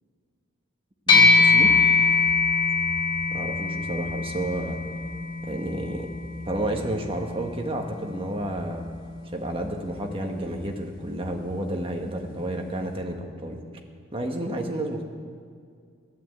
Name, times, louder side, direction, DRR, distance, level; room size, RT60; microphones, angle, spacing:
sound 1, 1.1-10.7, left 4 dB, 20° left, 1.5 m, -24 dB
voice 1, 1.1-1.8 3.3-4.8 5.4-6.1 6.4-8.8 9.3-13.6 14.1-15.0, right 1 dB, 25° right, 2 dB, 1.4 m, -31 dB
15.0 x 11.5 x 8.1 m, 2.2 s
head